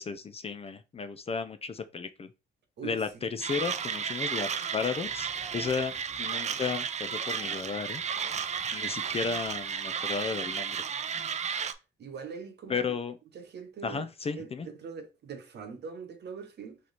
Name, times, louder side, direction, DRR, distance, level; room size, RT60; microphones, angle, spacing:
voice 1, 0.0-2.3 2.8-8.0 8.7-10.8 12.7-13.2 13.8-14.7, left 5 dB, 30° left, 0.4 m, -34 dB
sound 1, 3.0-7.2 7.5-10.0, left 1 dB, 10° left, 1.6 m, -57 dB
Mechanisms, 3.4-11.7, right 7 dB, 35° right, 0.4 m, -33 dB
voice 2, 12.0-12.9 13.3-14.0 14.3-16.8, right 6 dB, 60° right, 1.0 m, -42 dB
3.2 x 2.9 x 4.0 m
cardioid pair, 90°, 20 cm